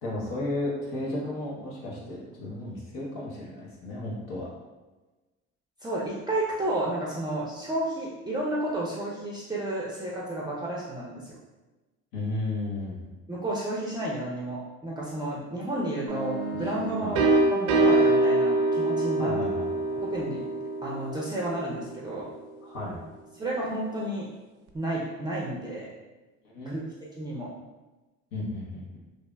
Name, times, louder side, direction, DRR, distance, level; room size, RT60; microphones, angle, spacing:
voice 1, 0.0-4.5 12.1-13.1 16.8-17.2 19.2-20.0 22.6-23.0 26.5-26.8 28.3-28.8, left 2 dB, 70° left, -5 dB, 0.9 m, -34 dB
voice 2, 5.8-11.4 13.3-19.3 20.1-20.5 20.8-22.3 23.3-24.3 24.7-25.9 26.7-26.8 27.2-27.5, right 1 dB, 15° right, -5 dB, 0.5 m, -31 dB
sound 1, 16.1-21.8, right 2 dB, 65° right, 0.6 m, -25 dB
3.2 x 2.5 x 2.2 m, 1.2 s
hypercardioid pair, 70°, 34 cm